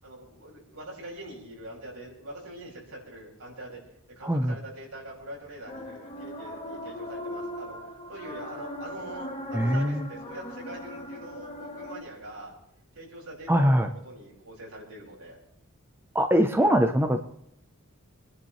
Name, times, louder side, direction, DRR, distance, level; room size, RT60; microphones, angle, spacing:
voice 1, 0.0-3.8 4.1-7.8 8.1-12.5 12.9-15.4, right 1 dB, 75° right, -3 dB, 6.1 m, -43 dB
voice 2, 4.2-4.5 9.5-10.1 13.5-13.9 16.1-17.3, equal, 10° right, 5 dB, 0.8 m, -22 dB
sound 1, 5.7-12.0, left 1 dB, 25° left, 1.3 m, -39 dB
27.0 x 10.5 x 3.2 m, 0.76 s
head